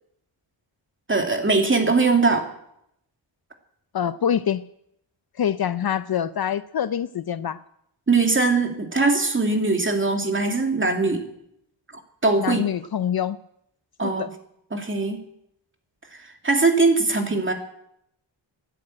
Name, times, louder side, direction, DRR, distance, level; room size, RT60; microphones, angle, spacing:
voice 1, 1.1-2.5 8.1-11.2 12.2-12.6 14.0-14.3 14.7-15.2 16.4-17.5, right 3 dB, 25° right, 4 dB, 2.5 m, -21 dB
voice 2, 3.9-4.6 5.4-7.6 12.4-13.4 14.0-14.3, left 9 dB, 55° left, 14 dB, 0.6 m, -25 dB
13.0 x 10.5 x 9.0 m, 0.75 s
wide cardioid pair, 125°, 46 cm